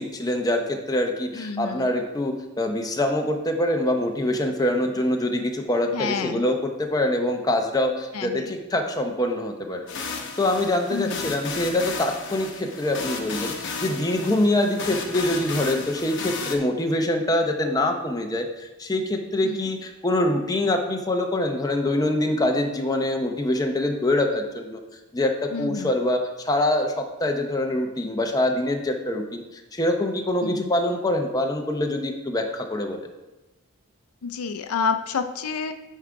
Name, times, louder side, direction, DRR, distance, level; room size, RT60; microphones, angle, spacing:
voice 1, 0.0-24.8 25.1-33.0, left 1 dB, 15° left, 3 dB, 0.6 m, -25 dB
voice 2, 1.4-1.9 5.9-6.5 8.1-8.5 10.9-11.4 14.6-14.8 19.4-19.7 25.5-25.9 30.4-30.7 34.2-35.7, left 5 dB, 75° left, 9 dB, 0.5 m, -29 dB
sound 1, 9.9-16.6, left 5 dB, 55° left, 0.9 m, -33 dB
9.7 x 3.7 x 4.6 m, 1.0 s
head